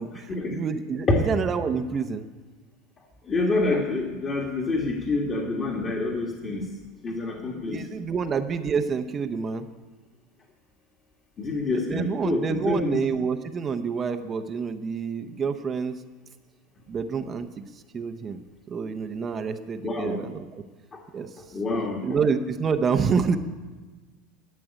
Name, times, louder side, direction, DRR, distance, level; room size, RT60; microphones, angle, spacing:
voice 1, 0.0-2.3 7.5-9.7 11.7-16.0 16.9-17.6 17.9-18.4 18.7-20.6 21.1-21.3 22.0-23.4, right 5 dB, 25° right, 8 dB, 0.7 m, -28 dB
voice 2, 3.2-6.7 7.0-7.9 11.4-13.0 19.8-20.1 20.9-21.0 21.5-22.2, left 2 dB, 25° left, 0 dB, 1.7 m, -27 dB
12.5 x 7.7 x 10.0 m, 1.3 s
supercardioid pair, 140°, 0 cm